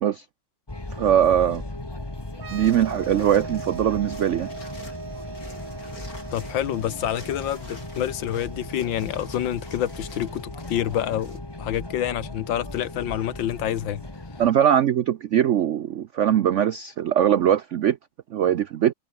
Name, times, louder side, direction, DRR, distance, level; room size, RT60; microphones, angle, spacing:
sound 1, 0.7-14.5, left 2 dB, 15° left, 1.9 m, -37 dB
voice 1, 1.0-1.6 2.5-4.5 14.4-18.0 18.3-18.9, right 10 dB, 80° right, 0.6 m, -21 dB
sound 2, 2.3-9.8, right 7 dB, 50° right, 1.8 m, -41 dB
sound 3, 2.6-11.4, left 2 dB, 50° left, 8.0 m, -48 dB
voice 2, 6.3-14.0, left 11 dB, 80° left, 1.8 m, -28 dB
omnidirectional pair, 2.0 m